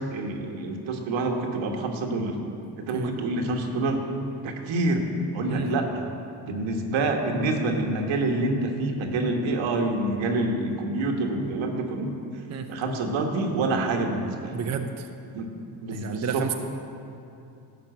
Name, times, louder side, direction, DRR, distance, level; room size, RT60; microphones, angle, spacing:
voice 1, 0.1-2.3 2.8-4.0 4.4-5.0 5.3-6.0 6.4-12.1 12.7-14.6 15.3-15.5 15.8-16.5, right 2 dB, 75° right, 3 dB, 1.5 m, -27 dB
voice 2, 14.5-15.1 15.9-16.5, right 7 dB, 35° right, 5 dB, 0.7 m, -31 dB
12.0 x 5.5 x 7.7 m, 2.7 s
cardioid pair, 85°, 47 cm